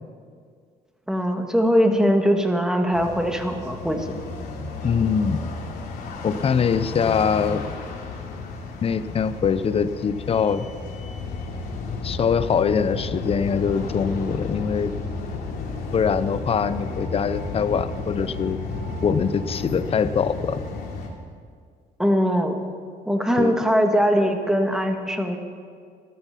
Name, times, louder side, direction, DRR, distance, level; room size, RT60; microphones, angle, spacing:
voice 1, 1.1-4.1 22.0-22.7 23.1-25.4, equal, 5° right, 4 dB, 1.6 m, -21 dB
sound 1, 2.9-21.1, left 3 dB, 65° left, 2.9 m, -32 dB
voice 2, 4.8-5.4 6.2-7.6 8.8-10.7 12.0-14.9 15.9-18.6 19.0-20.6 23.4-23.5, left 6 dB, 35° left, 13 dB, 0.6 m, -23 dB
13.5 x 13.0 x 5.9 m, 2.1 s
cardioid pair, 110°, 17 cm